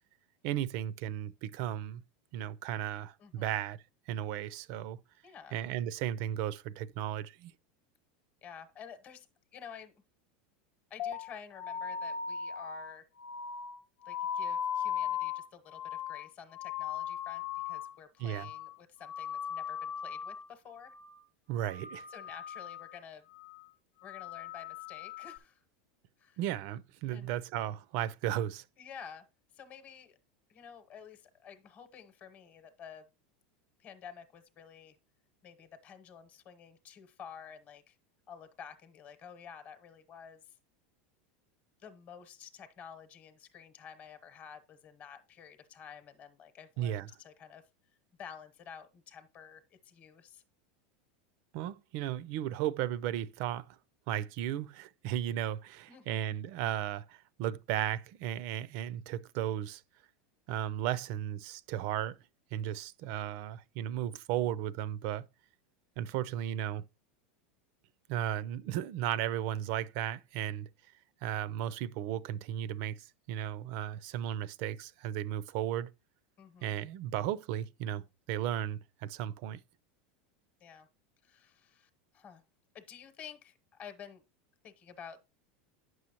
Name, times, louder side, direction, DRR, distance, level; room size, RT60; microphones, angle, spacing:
voice 1, 0.4-2.0 2.3-3.8 4.1-5.0 5.5-7.5 18.2-18.5 21.5-22.1 26.4-28.6 46.8-47.1 51.5-53.8 54.1-59.8 60.5-62.2 62.5-65.3 66.0-66.9 68.1-70.7 71.2-75.9 76.6-79.6, right 11 dB, 55° right, 0.4 m, -35 dB
voice 2, 5.2-5.6 8.4-9.3 9.5-9.9 10.9-13.1 14.0-20.9 22.1-23.2 24.0-25.6 26.2-26.4 27.1-27.3 28.8-29.3 29.5-30.2 30.5-33.0 33.8-34.9 35.4-38.0 38.3-40.4 41.8-47.6 48.2-50.4 55.9-56.3 76.4-76.8 80.6-80.9 81.2-82.4 82.7-84.2 84.6-85.2, left 7 dB, 30° left, 1.0 m, -51 dB
sound 1, 11.0-18.0 18.2-18.8 19.0-20.5 20.8-21.2 21.5-23.0 23.3-23.7 24.0-25.4, left 8 dB, 50° left, 0.7 m, -38 dB
9.2 x 6.2 x 2.9 m
supercardioid pair, 140°, 5 cm